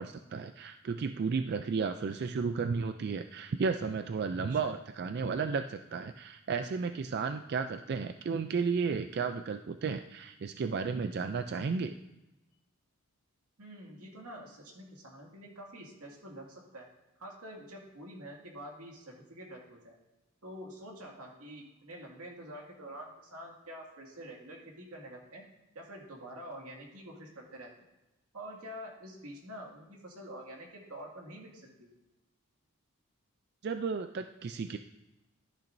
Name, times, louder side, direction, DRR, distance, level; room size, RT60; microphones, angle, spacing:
voice 1, 0.0-11.9 33.6-34.8, right 5 dB, 45° right, 8 dB, 0.3 m, -33 dB
voice 2, 13.6-16.9 17.2-20.0 20.4-25.5 25.7-27.7 28.3-31.9, right 1 dB, 80° right, -1 dB, 2.2 m, -47 dB
13.5 x 8.8 x 2.6 m, 1.0 s
head